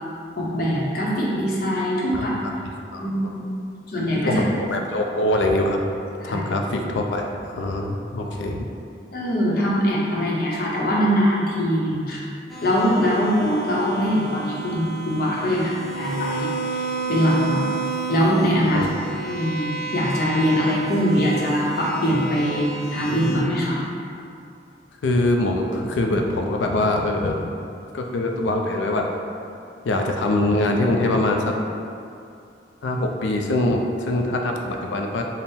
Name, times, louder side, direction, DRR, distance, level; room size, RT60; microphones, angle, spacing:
voice 1, 0.4-2.3 3.0-3.5 3.9-4.4 6.2-6.5 9.1-12.2 12.6-17.6 18.1-18.9 19.2-23.8, equal, 55° left, -5 dB, 0.7 m, -22 dB
voice 2, 2.1-2.5 2.9-3.1 4.2-5.8 6.2-8.6 18.7-18.9 25.0-27.5 27.9-29.1 29.8-31.5 32.8-35.2, left 1 dB, 85° left, 2 dB, 0.4 m, -23 dB
sound 1, 12.5-23.4, right 4 dB, ahead, 0.4 m, -31 dB
3.6 x 2.0 x 4.1 m, 2.5 s
head